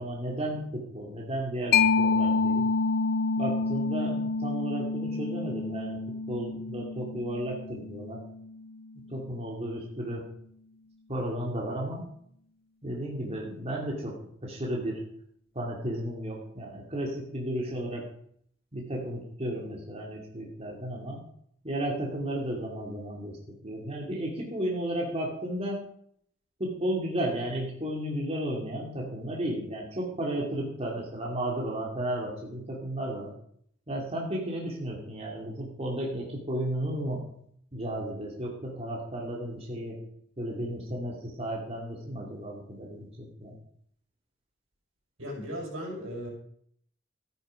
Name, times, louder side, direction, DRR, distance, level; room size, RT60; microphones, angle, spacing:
voice 1, 0.0-2.7 3.4-8.2 8.9-10.2 11.1-12.0 12.8-15.0 15.5-18.0 18.7-21.2 21.6-25.8 26.6-33.3 33.9-37.3 37.7-40.0 40.4-43.6, right 1 dB, 30° right, -2 dB, 2.7 m, -33 dB
Mallet percussion, 1.7-9.0, left 4 dB, 50° left, 0.6 m, -28 dB
voice 2, 45.2-46.3, equal, 80° right, -2 dB, 6.3 m, -36 dB
14.0 x 10.0 x 5.1 m, 0.66 s
head